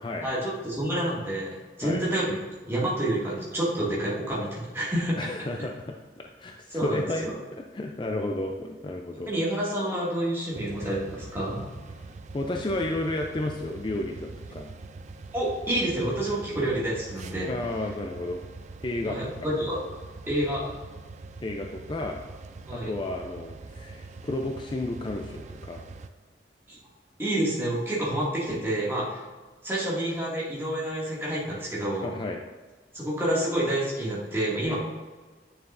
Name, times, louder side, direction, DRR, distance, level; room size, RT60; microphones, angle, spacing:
voice 1, 0.2-2.4 2.6-5.2 6.7-7.4 9.3-11.7 15.3-17.5 19.0-19.8 20.3-20.7 22.7-22.9 26.7-26.8 27.2-29.2 29.6-32.1 32.9-34.8, right 1 dB, 15° right, -7 dB, 2.2 m, -28 dB
voice 2, 5.2-9.3 12.3-14.7 17.4-18.4 18.8-19.5 21.4-22.2 22.7-25.9 32.0-32.4 34.7-34.8, left 1 dB, 25° left, 2 dB, 0.4 m, -32 dB
sound 1, 10.5-26.1, right 3 dB, 40° right, 0.4 m, -43 dB
9.2 x 6.7 x 2.6 m, 1.4 s
head